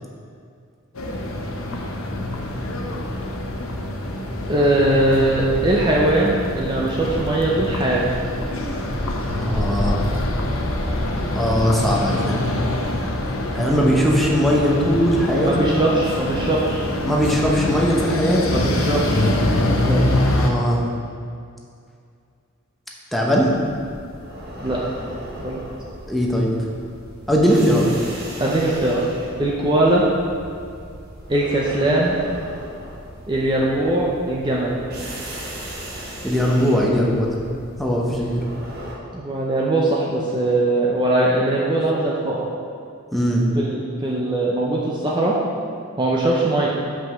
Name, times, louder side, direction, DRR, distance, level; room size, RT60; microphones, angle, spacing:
sound 1, 0.9-20.5, left 1 dB, 80° left, 0.9 m, -25 dB
voice 1, 4.5-8.0 15.5-16.9 18.5-19.3 19.8-20.0 24.6-24.8 25.4-25.6 28.4-29.1 29.4-30.0 31.3-32.2 33.3-34.8 39.1-42.4 43.5-45.4 46.0-46.7, right 1 dB, 20° right, -4 dB, 0.7 m, -20 dB
voice 2, 9.5-10.0 11.3-12.4 13.5-15.6 17.0-18.5 20.1-20.8 23.1-23.5 26.1-26.5 27.3-27.9 36.2-37.4 37.8-38.4 43.1-43.4, equal, ahead, -4 dB, 0.9 m, -19 dB
sound 2, 23.3-39.0, right 1 dB, 50° right, 1.3 m, -37 dB
5.7 x 5.4 x 6.4 m, 2.4 s
head